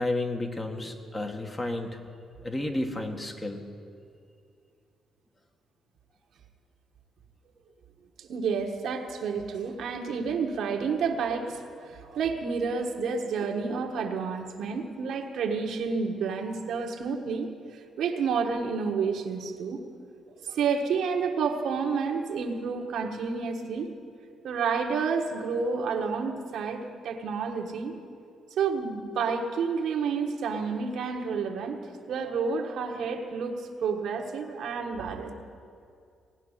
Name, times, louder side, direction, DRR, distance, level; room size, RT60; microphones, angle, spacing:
voice 1, 0.0-2.0 2.4-3.6, left 2 dB, 25° left, 4 dB, 1.5 m, -31 dB
voice 2, 8.2-17.5 18.0-19.8 20.3-23.9 24.4-27.9 28.6-31.8 32.1-35.3, right 5 dB, 75° right, 3 dB, 1.4 m, -30 dB
18.5 x 6.2 x 9.8 m, 2.4 s
cardioid pair, 90°, 0 cm